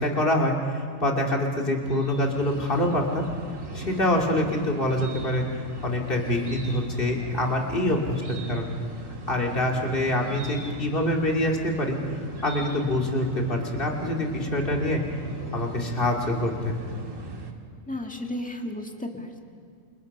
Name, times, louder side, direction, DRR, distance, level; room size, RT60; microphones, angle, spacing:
voice 1, 0.0-3.3 3.7-5.4 5.8-8.7 9.3-12.0 12.4-15.0 15.5-16.8, left 1 dB, 45° left, 0 dB, 2.9 m, -25 dB
sound 1, 1.8-17.5, right 2 dB, 75° right, 2.3 m, -39 dB
voice 2, 17.9-19.4, left 1 dB, 5° left, 2 dB, 2.0 m, -33 dB
29.0 x 27.5 x 5.5 m, 2.2 s
omnidirectional pair, 1.4 m